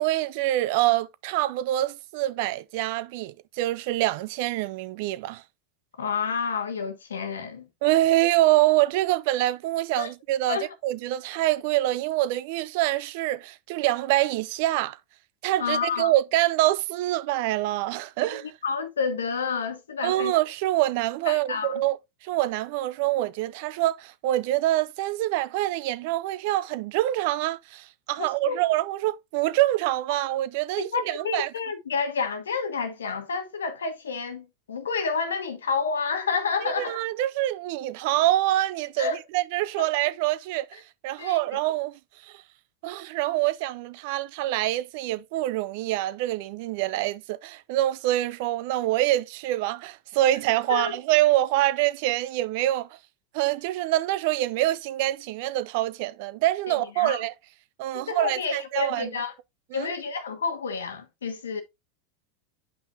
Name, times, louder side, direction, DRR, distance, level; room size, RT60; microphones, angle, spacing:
voice 1, 0.0-5.4 7.8-15.0 15.4-18.5 20.0-22.0 22.2-31.5 36.6-42.4 42.8-53.0 53.3-57.3 57.8-59.1 59.7-59.9, right 15 dB, 60° right, 0.6 m, -25 dB
voice 2, 6.0-7.7 10.0-10.1 10.5-10.7 15.6-16.1 18.6-20.3 21.3-21.8 28.5-28.6 30.8-37.0 39.0-39.2 41.2-41.4 50.7-51.0 56.7-57.2 57.9-59.3 59.7-61.6, left 5 dB, 85° left, 1.3 m, -29 dB
9.0 x 5.6 x 2.7 m
hypercardioid pair, 90°, 0 cm